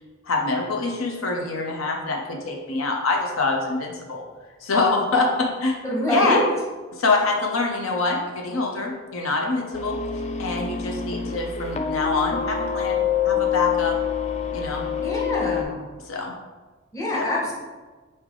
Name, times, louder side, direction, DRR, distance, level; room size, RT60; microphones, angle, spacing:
voice 1, 0.3-4.2 4.6-5.8 6.1-6.4 6.9-10.0 10.4-14.0 14.5-14.8 16.0-16.3 17.1-17.2, left 3 dB, 80° left, 1 dB, 0.6 m, -25 dB
voice 2, 5.8-6.4 15.0-15.9 16.9-17.5, equal, 15° left, -5 dB, 1.0 m, -25 dB
sound 1, 9.7-15.6, left 8 dB, 35° left, 0.3 m, -26 dB
4.1 x 3.2 x 3.7 m, 1.3 s
head